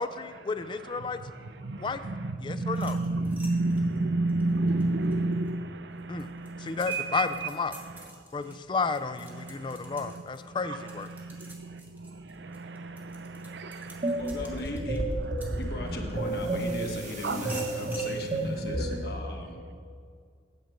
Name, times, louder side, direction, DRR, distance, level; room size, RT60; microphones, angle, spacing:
voice 1, 0.0-1.2 1.8-2.0 2.4-3.0 6.1-6.3 6.6-7.7 8.3-11.1, left 4 dB, 25° left, 11 dB, 0.3 m, -32 dB
voice 2, 0.6-8.1 8.4-8.6 9.3-14.8 15.2-16.0 17.2-17.4 19.3-19.5, right 2 dB, 70° right, 10 dB, 0.6 m, -32 dB
sound 1, 2.7-5.5 6.0-16.1 16.7-18.2, right 2 dB, 10° right, 1.1 m, -49 dB
sound 2, 14.0-19.2, right 2 dB, 40° right, 1.1 m, -31 dB
voice 3, 14.2-15.0 15.6-19.7, left 2 dB, 55° left, 1 dB, 1.2 m, -38 dB
9.3 x 5.1 x 7.7 m, 2.1 s
head